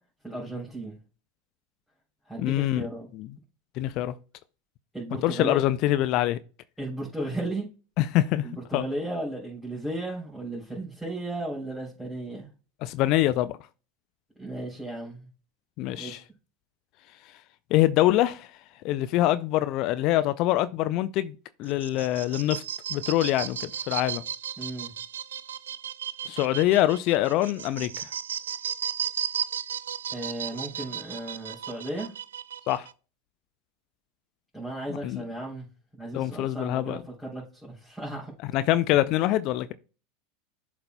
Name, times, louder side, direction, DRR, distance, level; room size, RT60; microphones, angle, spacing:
voice 1, 0.2-1.0 2.3-3.1 4.9-5.6 6.8-7.7 8.4-12.5 14.4-15.3 15.9-16.2 24.6-24.9 30.1-32.1 34.5-35.6 36.0-38.3, right 1 dB, 5° left, 3.4 m, -35 dB
voice 2, 2.4-2.8 3.1-3.3 3.8-4.1 5.2-6.4 8.0-8.5 8.7-8.8 12.8-13.6 15.8-16.2 17.7-18.5 18.8-22.6 22.9-24.2 26.3-28.1 32.7-32.9 34.9-35.2 36.1-37.0 38.5-39.7, left 14 dB, 45° left, 0.4 m, -24 dB
sound 1, 21.6-32.9, right 9 dB, 70° right, 0.3 m, -35 dB
11.5 x 4.2 x 2.2 m
figure-of-eight pair, 80°, 0 cm